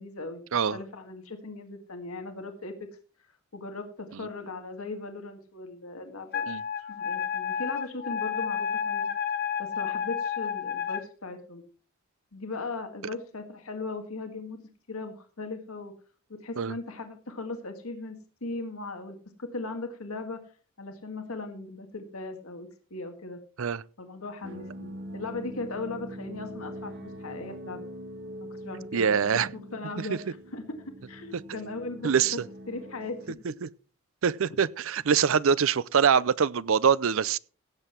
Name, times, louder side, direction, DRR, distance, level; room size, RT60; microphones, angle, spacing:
voice 1, 0.0-0.4 0.7-2.9 3.2-6.5 6.9-9.1 9.6-11.6 12.3-14.6 14.9-15.9 16.3-20.4 20.8-23.4 24.0-27.9 28.4-29.4 29.7-32.1 32.7-33.3 34.5-34.6, left 3 dB, 75° left, 1.8 m, -38 dB
Wind instrument woodwind instrument, 6.3-11.0, left 7 dB, 45° left, 0.8 m, -31 dB
sound 1, 24.4-33.3, equal, 50° right, 1.6 m, -43 dB
voice 2, 28.9-29.5 30.0-30.1 31.3-31.4 32.0-32.4 33.6-33.7 34.2-37.4, right 7 dB, 65° right, 0.5 m, -24 dB
16.5 x 7.8 x 4.5 m
head